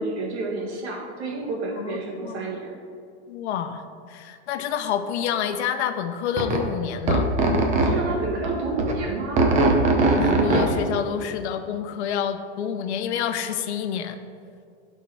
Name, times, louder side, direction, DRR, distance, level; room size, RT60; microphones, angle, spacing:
voice 1, 0.0-2.8 7.8-9.5, right 3 dB, 75° right, -1 dB, 2.2 m, -30 dB
voice 2, 1.8-2.5 3.3-7.3 10.0-14.2, left 8 dB, 80° left, 9 dB, 0.8 m, -28 dB
sound 1, 6.4-6.6 7.1-7.9 8.4-8.9 9.4-10.7, right 2 dB, 20° right, 0.8 m, -20 dB
11.0 x 4.6 x 4.7 m, 2.3 s
supercardioid pair, 160°, 33 cm